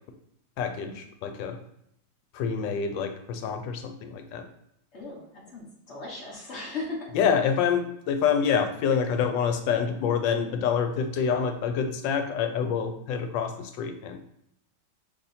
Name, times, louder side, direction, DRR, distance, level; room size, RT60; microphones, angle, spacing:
voice 1, 0.6-1.6 2.3-4.4 7.1-14.2, left 7 dB, 90° left, 7 dB, 1.3 m, -27 dB
voice 2, 4.9-7.1, left 3 dB, 45° left, -2 dB, 1.0 m, -37 dB
4.3 x 3.0 x 4.1 m, 0.74 s
omnidirectional pair, 1.9 m